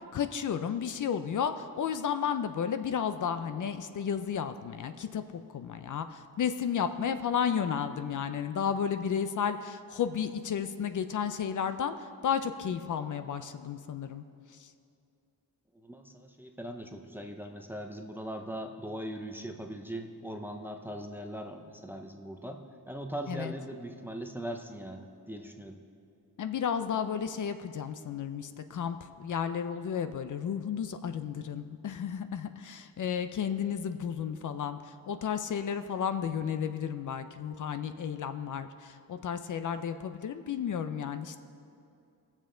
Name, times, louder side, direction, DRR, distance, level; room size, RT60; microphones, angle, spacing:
voice 1, 0.1-5.2 5.5-14.2 14.6-14.7 23.3-23.5 26.4-41.4, left 7 dB, 55° left, 10 dB, 0.5 m, -33 dB
voice 2, 15.7-25.8, right 1 dB, 5° right, 4 dB, 0.5 m, -40 dB
19.5 x 7.3 x 3.8 m, 2.5 s
wide cardioid pair, 170°, 38 cm